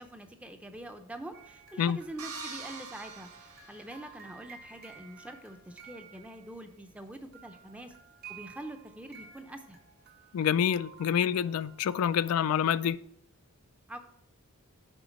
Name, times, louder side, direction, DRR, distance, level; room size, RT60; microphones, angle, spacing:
voice 1, 0.0-7.9 8.3-9.8 13.9-14.0, right 1 dB, 5° right, 0.5 m, -45 dB
sound 1, 1.3-7.1 7.3-12.9, right 3 dB, 45° right, 0.8 m, -52 dB
sound 2, 2.2-4.4, right 5 dB, 80° right, 1.6 m, -45 dB
voice 2, 10.3-13.0, left 8 dB, 75° left, 0.3 m, -27 dB
9.0 x 3.9 x 5.1 m
head